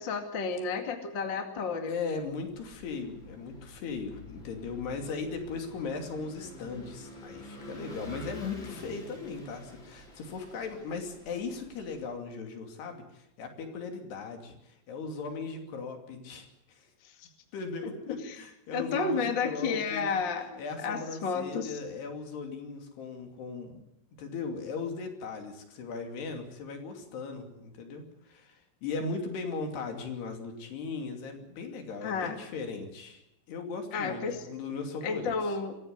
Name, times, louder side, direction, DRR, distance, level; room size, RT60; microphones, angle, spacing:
voice 1, 0.0-1.9 18.1-18.3 18.7-20.5 20.8-21.8 32.0-32.3 33.9-34.4 35.0-35.8, left 5 dB, 40° left, 5 dB, 1.7 m, -31 dB
voice 2, 1.9-16.9 17.5-20.2 20.6-23.8 24.2-28.6 28.8-33.2 33.5-35.3, left 4 dB, 60° left, 4 dB, 4.5 m, -38 dB
Vehicle / Engine, 2.3-12.1, left 1 dB, 25° left, 5.2 m, -48 dB
25.0 x 15.0 x 9.6 m, 0.84 s
omnidirectional pair, 5.7 m